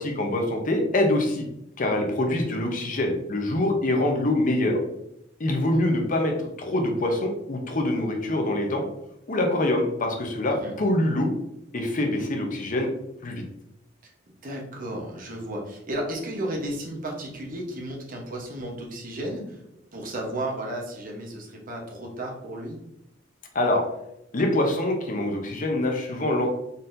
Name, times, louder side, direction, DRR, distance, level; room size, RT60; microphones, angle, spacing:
voice 1, 0.0-1.5 1.8-4.8 5.4-8.8 9.3-11.3 11.7-12.9 13.2-13.4 23.5-23.9 24.3-26.5, left 1 dB, 45° left, 3 dB, 0.7 m, -24 dB
voice 2, 14.4-19.6 19.9-22.8, right 1 dB, 45° right, 0 dB, 1.0 m, -33 dB
4.0 x 4.0 x 2.6 m, 0.81 s
head